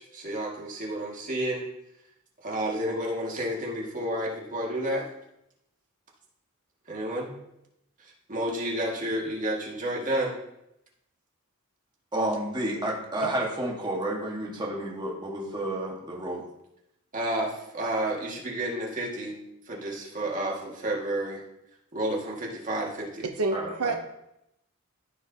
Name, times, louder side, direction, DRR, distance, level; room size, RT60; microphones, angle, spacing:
voice 1, 0.0-1.7 2.4-5.1 6.9-7.3 8.3-10.4 17.1-19.3 19.7-21.4 21.9-23.2, right 1 dB, 35° right, -2 dB, 1.9 m, -30 dB
voice 2, 12.1-16.4 23.5-23.9, right 1 dB, 20° right, -2 dB, 1.5 m, -31 dB
voice 3, 23.2-23.9, right 3 dB, 85° right, 4 dB, 0.7 m, -28 dB
14.5 x 4.9 x 2.8 m, 0.83 s
head